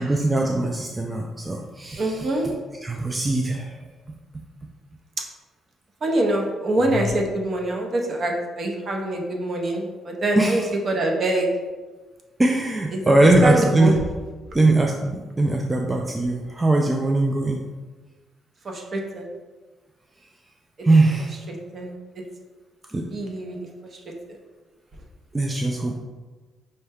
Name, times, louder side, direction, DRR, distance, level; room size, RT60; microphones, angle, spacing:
voice 1, 0.0-2.3 2.8-3.7 10.4-10.7 12.4-13.9 14.5-17.6 20.8-21.4 22.9-23.1 25.3-26.0, right 2 dB, 20° right, 1 dB, 0.3 m, -21 dB
voice 2, 2.0-2.5 6.0-11.5 12.9-13.9 18.6-19.2 21.7-21.9 23.1-23.7, right 1 dB, 50° right, 1 dB, 0.8 m, -24 dB
5.3 x 2.2 x 3.5 m, 1.3 s
cardioid pair, 90°, 0 cm